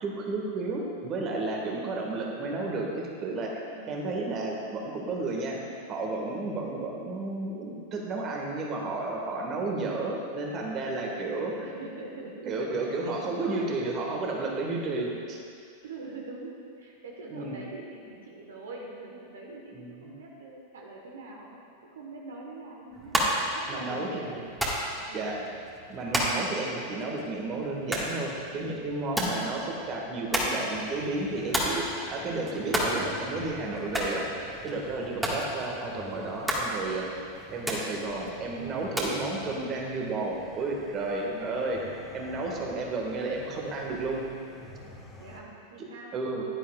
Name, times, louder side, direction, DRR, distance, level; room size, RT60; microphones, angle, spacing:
voice 1, 0.0-3.6 3.9-5.6 5.9-11.5 12.5-15.1 17.3-17.6 19.7-20.1 23.7-24.4 25.1-25.4 25.9-29.6 29.9-34.3 34.6-37.1 37.5-44.2 46.1-46.4, right 2 dB, 30° right, -1 dB, 1.6 m, -32 dB
voice 2, 11.6-13.7 14.8-15.0 15.8-21.6 21.9-24.3 25.1-25.4 35.1-35.3 41.2-41.5 45.2-46.1, right 2 dB, 65° right, -1 dB, 1.3 m, -43 dB
sound 1, 22.9-39.2, right 1 dB, 10° right, 1.7 m, -33 dB
sound 2, 30.7-45.4, left 2 dB, 10° left, 1.5 m, -48 dB
16.0 x 11.0 x 2.4 m, 2.4 s
figure-of-eight pair, 90°, 0 cm